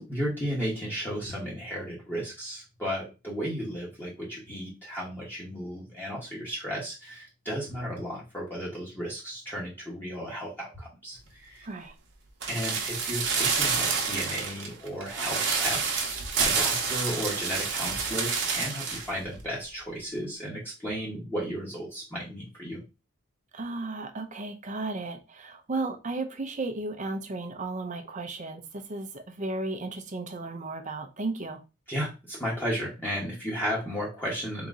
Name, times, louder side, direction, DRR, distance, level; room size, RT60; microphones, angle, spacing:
voice 1, 0.0-11.7 12.5-22.8 31.9-34.7, equal, 10° left, 1.2 m, -34 dB
voice 2, 11.6-11.9 23.5-31.6, right 2 dB, 35° right, 0.6 m, -34 dB
sound 1, 12.4-19.1 19.4-19.5, right 5 dB, 55° right, 1.0 m, -28 dB
4.0 x 2.8 x 3.7 m
head